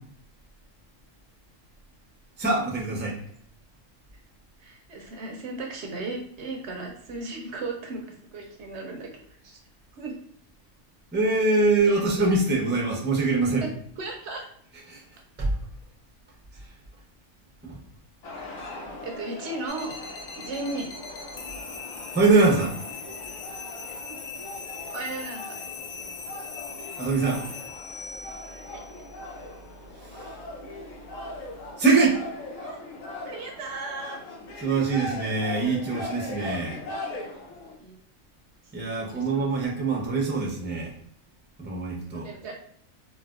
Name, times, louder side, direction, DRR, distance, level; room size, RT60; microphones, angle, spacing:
voice 1, 2.4-3.2 11.1-13.7 14.9-15.0 15.4-15.5 17.6-17.8 22.1-22.7 27.0-27.5 31.8-32.2 34.6-36.8 38.7-40.9 41.6-42.3, right 3 dB, 15° right, -2 dB, 0.4 m, -23 dB
voice 2, 4.6-8.0 8.3-9.1 9.4-9.6 10.0-10.2 11.8-12.3 13.6-14.4 19.0-20.0 20.3-20.9 23.9-24.2 24.9-25.5 28.7-28.8 32.6-32.8 33.2-34.2 37.8-38.0 38.9-39.5 42.1-42.5, right 2 dB, 65° right, 1 dB, 0.8 m, -36 dB
sound 1, 18.2-37.8, left 2 dB, 90° left, 1.2 m, -40 dB
sound 2, 19.7-31.7, left 5 dB, 65° left, 0.4 m, -41 dB
4.0 x 2.2 x 2.3 m, 0.64 s
omnidirectional pair, 1.4 m